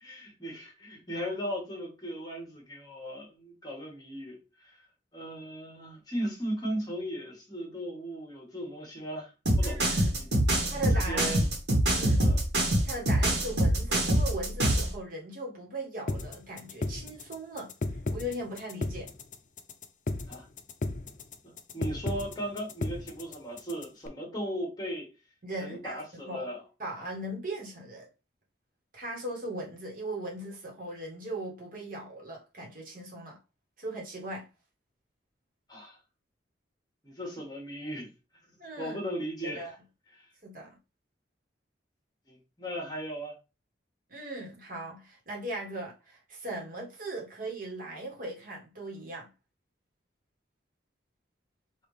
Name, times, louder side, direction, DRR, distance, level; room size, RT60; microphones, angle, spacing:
voice 1, 0.0-4.8 5.1-9.3 9.6-9.8 10.1-11.5 12.2-12.4 20.3-20.5 21.4-25.1 25.6-26.6 35.7-36.0 37.0-38.1 38.8-39.7 40.2-40.3 42.3-43.4, equal, 20° left, 1.5 m, -37 dB
sound 1, 9.5-14.9, right 1 dB, 65° right, 1.5 m, -24 dB
voice 2, 9.6-10.2 10.7-11.4 11.9-12.2 12.8-17.7 18.1-19.1 25.4-26.5 26.8-28.1 28.9-33.4 33.8-34.5 38.6-39.0 39.5-39.7 40.4-40.8 44.1-49.3, right 1 dB, 50° right, 1.5 m, -38 dB
sound 2, 16.1-24.1, left 2 dB, 45° left, 0.5 m, -34 dB
5.4 x 2.7 x 3.2 m
head